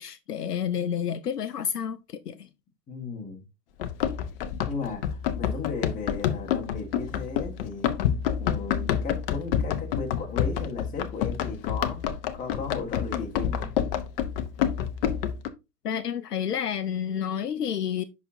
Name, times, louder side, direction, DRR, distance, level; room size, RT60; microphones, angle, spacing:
voice 1, 0.0-2.5 15.8-18.0, left 8 dB, 70° left, 0.8 m, -30 dB
voice 2, 2.9-3.4 4.7-7.9 8.4-13.7, left 4 dB, 15° left, 2.0 m, -35 dB
Run, 3.8-15.5, left 9 dB, 35° left, 0.8 m, -28 dB
7.9 x 6.1 x 2.7 m
figure-of-eight pair, 115°, 49 cm